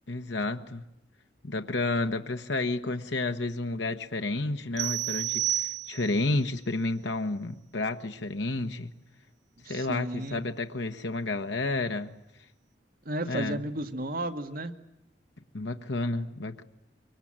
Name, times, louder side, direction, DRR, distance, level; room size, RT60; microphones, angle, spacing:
voice 1, 0.1-0.8 1.4-8.9 9.6-12.1 13.3-13.6 15.5-16.6, left 2 dB, 85° left, 6 dB, 1.3 m, -31 dB
sound 1, 4.8-6.3, right 13 dB, 90° right, 2.6 m, -30 dB
voice 2, 9.7-10.4 13.1-14.7, right 1 dB, 55° right, 6 dB, 1.8 m, -33 dB
24.5 x 24.5 x 8.9 m, 0.89 s
head